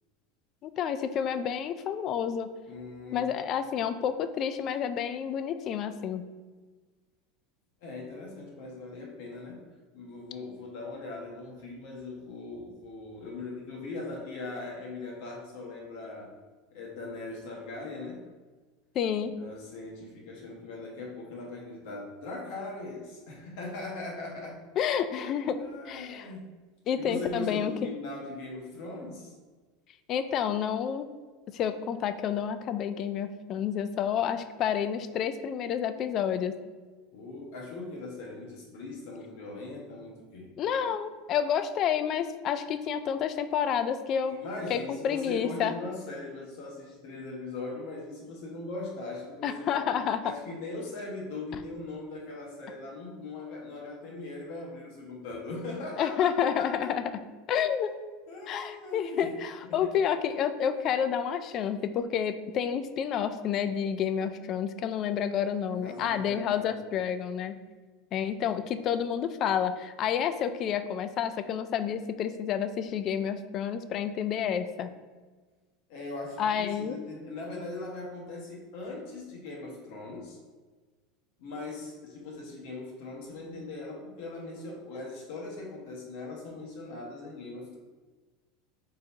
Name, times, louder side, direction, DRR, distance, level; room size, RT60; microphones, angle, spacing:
voice 1, 0.6-2.5 3.1-6.2 19.0-19.4 24.8-25.6 25.9-26.3 26.9-27.9 30.1-31.1 31.5-36.6 40.6-44.4 44.7-45.8 49.4-50.3 56.0-57.0 57.5-57.9 58.5-67.6 68.1-74.9 76.4-77.0, left 8 dB, 40° left, 10 dB, 0.3 m, -29 dB
voice 2, 2.7-3.4 7.8-9.6 9.9-16.3 16.7-18.3 19.2-24.6 25.5-26.6 26.9-29.3 37.1-40.6 44.3-49.8 50.2-56.9 58.3-59.3 59.7-59.9 65.8-66.7 68.4-68.5 75.9-80.4 81.4-87.8, left 2 dB, 65° left, -2 dB, 1.1 m, -40 dB
3.8 x 2.7 x 4.4 m, 1.3 s
supercardioid pair, 135°, 0 cm